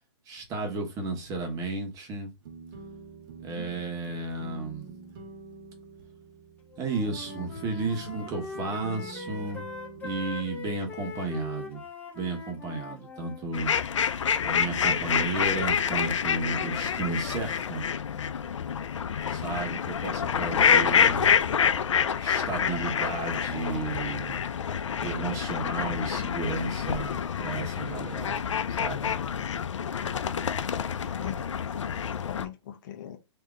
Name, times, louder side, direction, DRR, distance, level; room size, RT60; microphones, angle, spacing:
voice 1, 0.3-2.3 3.4-4.9 6.8-9.7 10.0-11.8 12.1-13.7 14.4-17.9 19.3-21.4 22.2-24.4 25.0-28.4 28.7-29.1, right 3 dB, 20° right, 1.2 m, -33 dB
sound 1, 2.4-11.7, right 4 dB, 45° right, 1.3 m, -46 dB
Wind instrument woodwind instrument, 6.7-13.5, left 4 dB, 10° left, 1.1 m, -41 dB
sound 2, 13.5-32.4, left 7 dB, 85° left, 0.5 m, -27 dB
voice 2, 31.0-33.2, left 11 dB, 40° left, 0.8 m, -41 dB
3.6 x 2.8 x 3.7 m
hypercardioid pair, 145°, 15 cm